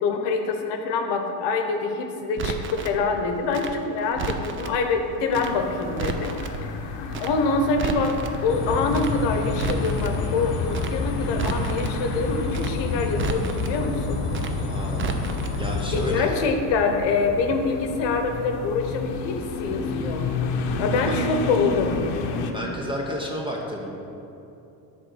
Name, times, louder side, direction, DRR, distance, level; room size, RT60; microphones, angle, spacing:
voice 1, 0.0-6.3 6.6-14.2 15.9-20.3 20.8-22.0, left 4 dB, 60° left, 5 dB, 1.0 m, -25 dB
Crackle, 2.4-3.0 3.5-4.8 5.3-5.5 5.8-6.6 7.1-7.3 7.6-8.4 8.9-9.1 9.4-10.2 10.7-10.9 11.2-12.0 12.5-12.7 13.0-13.8 14.3-14.5 14.8-15.6 15.8-16.0, right 6 dB, 30° right, 0.3 m, -32 dB
sound 1, 5.3-22.5, left 3 dB, 85° left, 0.8 m, -32 dB
sound 2, 8.5-16.2, left 3 dB, 25° left, 1.3 m, -29 dB
voice 2, 14.7-15.2 15.6-16.4 20.9-21.1 22.5-23.9, equal, 10° right, -1 dB, 0.7 m, -31 dB
7.6 x 3.9 x 6.1 m, 2.9 s
cardioid pair, 125°, 48 cm